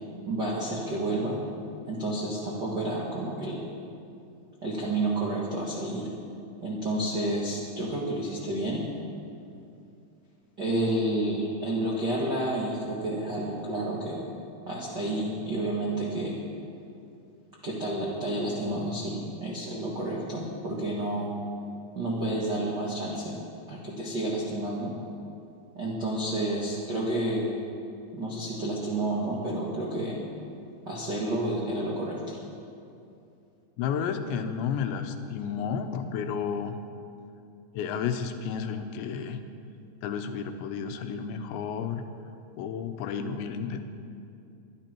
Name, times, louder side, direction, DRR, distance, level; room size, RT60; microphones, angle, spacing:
voice 1, 0.3-1.4 1.9-3.6 4.6-6.1 6.6-8.8 10.6-14.3 14.6-16.3 17.6-21.3 21.9-23.4 23.7-24.9 25.7-27.5 28.1-30.1 30.8-32.4, right 1 dB, 60° right, -5 dB, 1.1 m, -30 dB
voice 2, 33.8-36.8 37.7-39.4 40.0-42.0 42.6-43.8, left 7 dB, 80° left, 7 dB, 3.1 m, -32 dB
22.5 x 11.5 x 4.5 m, 2.6 s
omnidirectional pair, 5.2 m